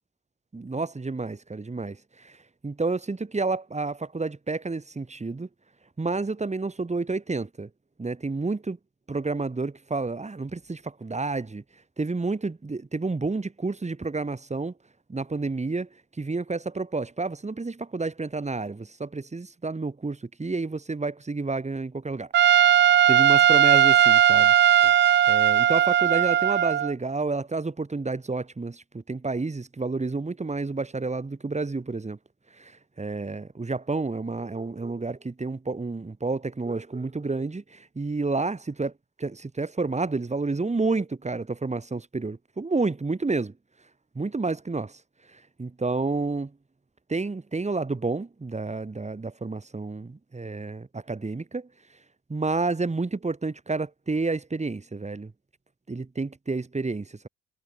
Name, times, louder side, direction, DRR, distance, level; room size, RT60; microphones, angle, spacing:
voice 1, 0.5-2.4 2.6-5.5 6.0-7.7 8.0-8.8 9.1-11.6 12.0-14.7 15.1-15.9 16.2-22.3 23.1-24.9 25.3-32.2 32.6-32.7 33.0-38.9 39.2-43.5 44.2-45.0 45.6-46.5 47.1-51.7 52.3-55.3 55.9-57.3, right 3 dB, 20° right, 6.9 m, -30 dB
Trumpet, 22.3-26.9, right 10 dB, 40° right, 0.4 m, -18 dB
cardioid pair, 90°, 30 cm